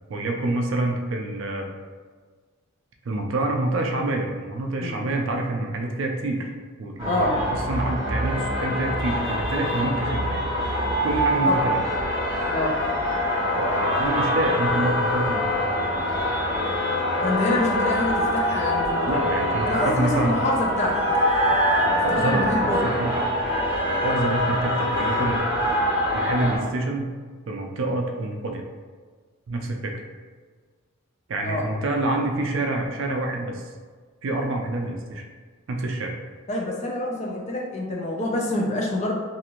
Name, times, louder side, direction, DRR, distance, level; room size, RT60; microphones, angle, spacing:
voice 1, 0.1-1.7 3.1-6.5 6.8-10.3 11.0-11.8 13.6-15.5 19.1-20.4 21.8-23.2 23.9-25.4 26.1-27.1 27.5-28.6 29.5-29.9 31.3-33.6 34.2-35.2 35.7-36.2, right 2 dB, 60° right, 2 dB, 0.4 m, -27 dB
sound 1, 7.0-26.6, equal, 15° right, 1.4 m, -24 dB
voice 2, 7.1-7.4 11.5-11.7 12.5-12.7 17.2-19.2 19.6-21.1 21.9-23.0 31.4-31.7 36.5-39.1, left 1 dB, 30° left, -2 dB, 0.4 m, -26 dB
2.6 x 2.4 x 2.9 m, 1.5 s
head